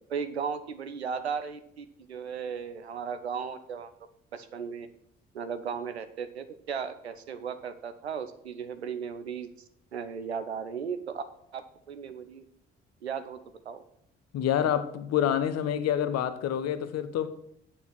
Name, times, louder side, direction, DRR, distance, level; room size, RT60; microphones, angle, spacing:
voice 1, 0.1-3.9 4.3-4.9 5.3-9.5 9.9-11.2 11.5-12.4 13.0-13.4 13.6-13.8, right 6 dB, 85° right, 10 dB, 0.7 m, -36 dB
voice 2, 14.3-17.3, left 9 dB, 50° left, 12 dB, 1.0 m, -27 dB
8.7 x 6.5 x 7.6 m, 0.70 s
figure-of-eight pair, 45°, 32 cm